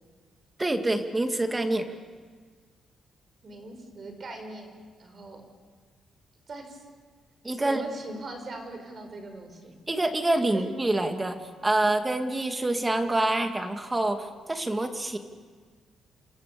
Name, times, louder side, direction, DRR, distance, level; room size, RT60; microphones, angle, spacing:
voice 1, 0.6-1.9 7.4-7.8 9.9-15.2, right 2 dB, 15° right, 6 dB, 2.4 m, -26 dB
voice 2, 3.4-4.7 5.0-5.4 6.5-6.9 7.5-9.8 10.5-10.7, right 2 dB, 40° right, 5 dB, 5.6 m, -40 dB
29.0 x 26.5 x 7.1 m, 1.5 s
cardioid pair, 115°, 0 cm